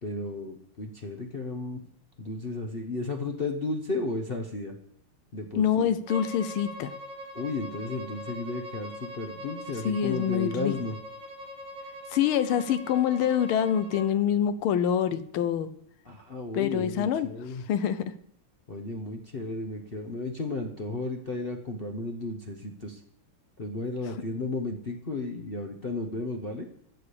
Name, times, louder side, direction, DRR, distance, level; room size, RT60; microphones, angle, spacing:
voice 1, 0.0-1.8 2.2-4.8 5.3-5.9 7.3-10.9 16.0-17.6 18.7-23.0 23.6-26.6, left 2 dB, 40° left, 3 dB, 0.8 m, -34 dB
voice 2, 5.6-6.9 9.8-10.7 12.1-15.7 16.5-17.3 17.7-18.0, left 9 dB, 85° left, 12 dB, 1.6 m, -25 dB
Bowed string instrument, 6.1-14.1, left 1 dB, 65° right, 2.0 m, -42 dB
13.5 x 5.0 x 8.4 m, 0.71 s
omnidirectional pair, 2.3 m